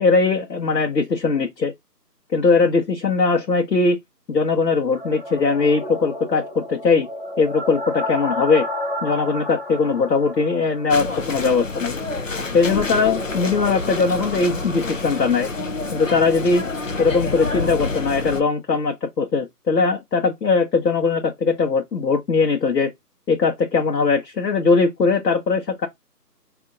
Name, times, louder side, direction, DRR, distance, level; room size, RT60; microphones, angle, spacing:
voice 1, 0.0-1.7 2.3-4.0 4.3-7.1 7.4-8.7 9.0-12.0 12.5-15.5 15.9-16.6 17.0-22.9 23.3-25.9, left 4 dB, 85° left, 0.9 m, -20 dB
sound 1, 4.9-15.4, left 1 dB, 40° right, 0.7 m, -32 dB
sound 2, 10.9-18.4, left 3 dB, 55° left, 0.5 m, -28 dB
5.3 x 2.6 x 2.5 m
figure-of-eight pair, 175°, 48 cm